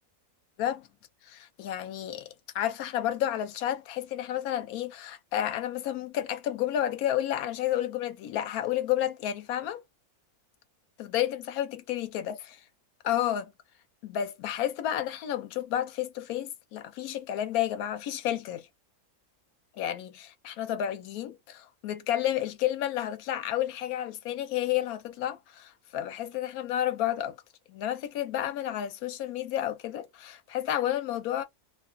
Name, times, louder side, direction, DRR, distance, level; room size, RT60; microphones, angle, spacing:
voice 1, 1.2-9.8 11.0-12.4 13.0-13.5 14.0-18.7 19.8-27.4 27.7-31.4, left 11 dB, 75° left, 1.0 m, -31 dB
2.4 x 2.4 x 2.2 m
omnidirectional pair, 1.6 m